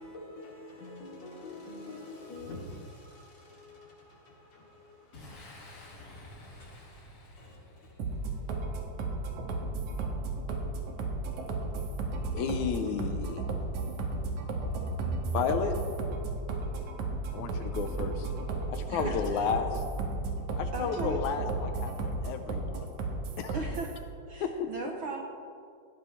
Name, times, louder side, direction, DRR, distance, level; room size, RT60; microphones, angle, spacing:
voice 1, 0.0-8.0, left 2 dB, 65° left, 4.0 m, -47 dB
Boom, 5.1-8.7, left 1 dB, 40° left, 2.3 m, -50 dB
sound 1, 8.0-24.0, right 3 dB, 85° right, 2.9 m, -34 dB
voice 2, 12.3-13.4 15.3-15.7 17.3-18.3 18.7-19.8 20.6-22.9 23.4-23.6 24.4-24.7, left 6 dB, 85° left, 2.3 m, -32 dB
voice 3, 18.9-19.5 20.7-21.2 23.5-24.0 24.3-25.2, right 4 dB, 65° right, 1.3 m, -38 dB
18.0 x 14.5 x 3.3 m
omnidirectional pair, 3.3 m